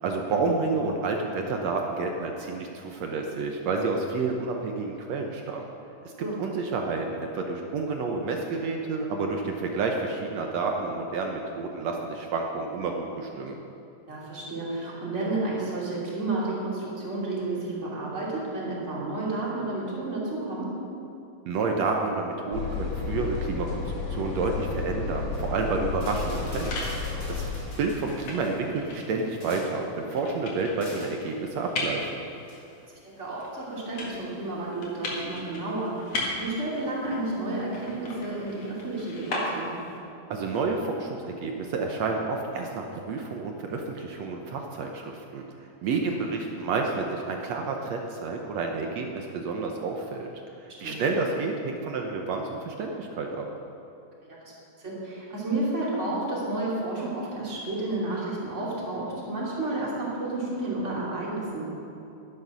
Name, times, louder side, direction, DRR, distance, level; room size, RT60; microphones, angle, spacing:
voice 1, 0.0-5.7 6.0-6.1 6.4-13.6 21.4-27.4 27.8-32.2 40.3-50.3 50.6-53.5, right 3 dB, 70° right, 2 dB, 1.6 m, -30 dB
voice 2, 14.1-20.7 33.0-39.8 50.8-50.9 54.3-54.5 54.8-61.6, right 2 dB, 20° right, -6 dB, 2.9 m, -31 dB
sound 1, 22.5-27.6, left 4 dB, 80° left, 4.1 m, -32 dB
sound 2, 25.2-25.5 25.9-28.6 29.1-29.9 30.8-31.2 32.4-32.6, equal, 15° left, 2.5 m, -46 dB
sound 3, 26.1-40.0, left 2 dB, 55° left, 2.8 m, -38 dB
12.0 x 11.0 x 6.1 m, 2.7 s
omnidirectional pair, 4.0 m